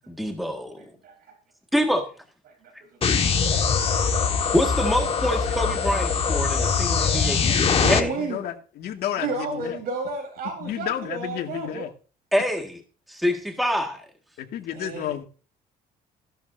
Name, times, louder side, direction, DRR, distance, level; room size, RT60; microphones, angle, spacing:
voice 1, 0.1-0.8 1.7-2.1 4.5-8.1 12.3-12.8 13.1-14.0, equal, ahead, 1.8 m, -25 dB
voice 2, 2.5-2.9 3.2-4.5 6.0-6.6 7.0-7.3 7.8-8.4 9.1-11.9 14.7-15.1, right 3 dB, 65° right, 4.3 m, -33 dB
sound 1, 3.0-8.0, left 5 dB, 35° left, 1.7 m, -22 dB
voice 3, 7.7-9.8 10.6-11.9 14.4-15.2, left 10 dB, 70° left, 2.3 m, -31 dB
16.0 x 12.0 x 2.7 m
cardioid pair, 110°, 17 cm